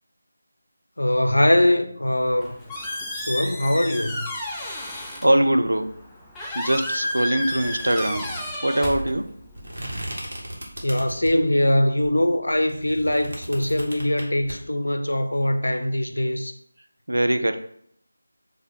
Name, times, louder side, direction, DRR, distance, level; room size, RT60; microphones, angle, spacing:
voice 1, 1.0-2.6 3.2-4.2 10.8-16.5, left 1 dB, 80° left, 0.4 m, -22 dB
Squeak, 2.2-9.7, left 1 dB, 5° left, 0.3 m, -32 dB
voice 2, 4.9-5.9 6.5-8.3 8.6-9.3 17.1-17.6, right 1 dB, 80° right, 0.4 m, -22 dB
sound 1, 7.5-11.5 12.0-14.5, right 1 dB, 55° right, 1.0 m, -37 dB
4.5 x 2.1 x 2.8 m
figure-of-eight pair, 165°, 0 cm